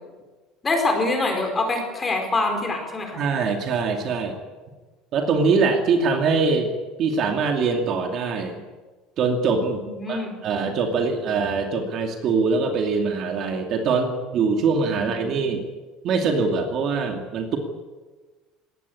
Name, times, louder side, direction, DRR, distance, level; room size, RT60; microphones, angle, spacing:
voice 1, 0.6-3.2 9.8-10.4 14.9-15.4, left 2 dB, 15° left, 4 dB, 4.5 m, -25 dB
voice 2, 3.1-4.4 5.1-6.7 7.0-8.6 9.2-15.7 16.0-17.6, right 4 dB, 35° right, 4 dB, 2.5 m, -23 dB
20.5 x 18.0 x 9.9 m, 1.3 s
cardioid pair, 175°, 0 cm